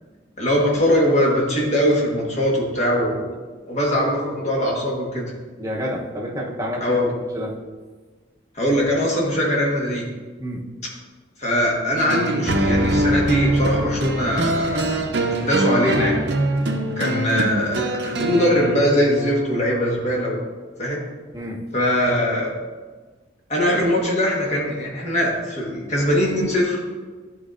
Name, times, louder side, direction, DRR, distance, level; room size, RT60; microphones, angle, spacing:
voice 1, 0.4-3.3 3.7-5.3 6.8-7.1 8.5-10.1 11.4-14.9 15.3-16.2 17.0-20.4 20.8-21.0 21.7-22.5 23.5-26.8, equal, 35° left, -3 dB, 1.4 m, -21 dB
voice 2, 5.6-7.0 7.3-7.6 10.4-10.6 21.3-21.6, equal, 15° right, -3 dB, 0.8 m, -29 dB
sound 1, 12.0-19.4, right 1 dB, 60° right, 0.6 m, -23 dB
11.0 x 4.6 x 2.5 m, 1.4 s
head